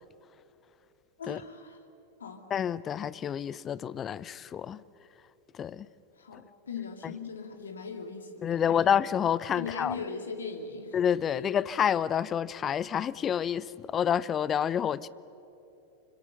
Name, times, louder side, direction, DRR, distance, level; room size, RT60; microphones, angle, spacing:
voice 1, 1.2-1.8 2.2-2.5 6.2-8.9 9.5-11.0, left 5 dB, 70° left, 2.4 m, -39 dB
voice 2, 2.5-4.8 5.6-5.9 6.3-6.4 8.4-9.9 10.9-15.1, left 8 dB, 25° left, 0.6 m, -28 dB
26.0 x 25.5 x 6.7 m
figure-of-eight pair, 90°, 0 cm